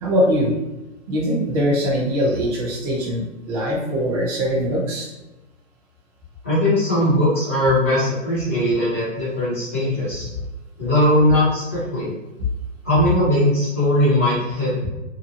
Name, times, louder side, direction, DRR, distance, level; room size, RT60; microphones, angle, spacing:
voice 1, 0.0-0.5 1.1-5.1, equal, 30° right, -5 dB, 0.7 m, -22 dB
voice 2, 6.4-10.3 10.8-12.1 12.8-14.9, left 1 dB, 10° left, -10 dB, 0.4 m, -19 dB
2.7 x 2.2 x 2.7 m, 1.1 s
hypercardioid pair, 160°, 39 cm